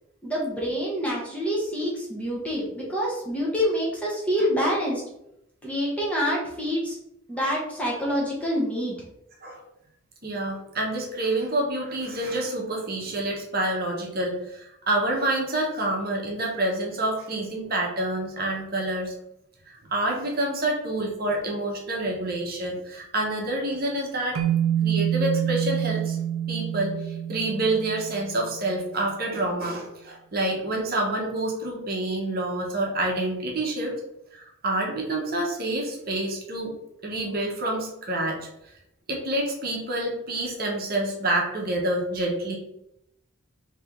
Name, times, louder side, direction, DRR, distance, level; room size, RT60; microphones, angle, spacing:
voice 1, 0.2-5.0 5.6-7.0 7.3-9.0, equal, 5° left, -5 dB, 0.7 m, -26 dB
voice 2, 10.2-19.1 19.7-24.4 24.8-26.2 26.5-33.9 34.3-36.7 37.0-38.4 39.1-42.6, right 1 dB, 45° right, -1 dB, 0.8 m, -28 dB
sound 1, 24.3-28.6, right 10 dB, 80° right, 0.4 m, -27 dB
3.3 x 2.8 x 3.5 m, 0.82 s
head